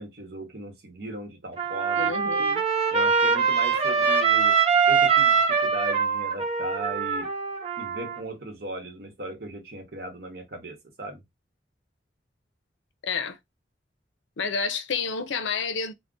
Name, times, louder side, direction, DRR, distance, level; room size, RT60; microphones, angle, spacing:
voice 1, 0.0-2.1 2.9-4.6 4.9-7.3 7.8-11.2, right 1 dB, 55° right, 0.9 m, -37 dB
Trumpet, 1.6-8.2, right 6 dB, 30° right, 0.5 m, -23 dB
voice 2, 2.0-2.6 13.0-13.4 14.4-15.9, left 5 dB, 85° left, 0.5 m, -29 dB
2.4 x 2.1 x 3.6 m
head